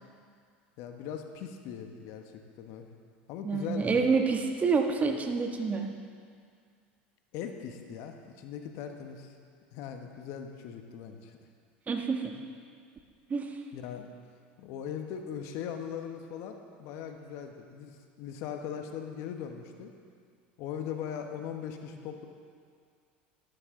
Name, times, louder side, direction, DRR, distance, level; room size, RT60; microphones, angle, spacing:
voice 1, 0.8-2.9 3.3-4.2 7.3-9.4 9.7-11.4 13.7-14.1 14.6-19.9 20.6-22.3, left 8 dB, 60° left, 5 dB, 1.2 m, -40 dB
voice 2, 3.4-5.9 11.9-12.4 13.3-13.5, right 4 dB, 25° right, 3 dB, 1.4 m, -28 dB
13.0 x 12.5 x 3.8 m, 2.1 s
hypercardioid pair, 90°, 6 cm